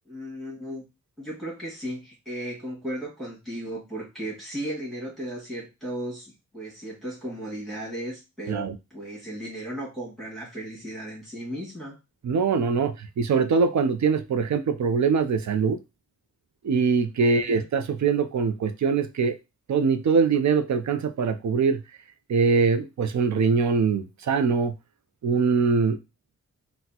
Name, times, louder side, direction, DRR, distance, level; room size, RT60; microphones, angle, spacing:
voice 1, 0.1-0.8 1.2-12.0 17.3-17.7, right 1 dB, ahead, -7 dB, 1.7 m, -36 dB
voice 2, 12.2-15.8 16.6-19.3 19.7-21.8 22.3-24.7 25.2-26.0, right 5 dB, 65° right, 9 dB, 0.5 m, -23 dB
4.0 x 2.1 x 2.8 m, 0.25 s
wide cardioid pair, 110°, 30 cm